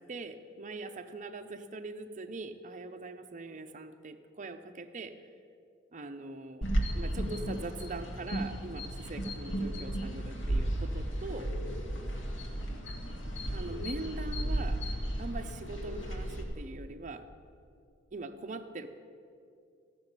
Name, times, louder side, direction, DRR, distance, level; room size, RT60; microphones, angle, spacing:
voice 1, 0.0-5.2 5.9-6.6 6.9-11.5 13.5-14.8 15.2-17.3 18.1-18.9, right 3 dB, 40° right, 8 dB, 0.7 m, -42 dB
sound 1, 6.6-16.4, right 1 dB, 80° left, 1.8 m, -34 dB
14.5 x 6.9 x 8.9 m, 2.4 s
head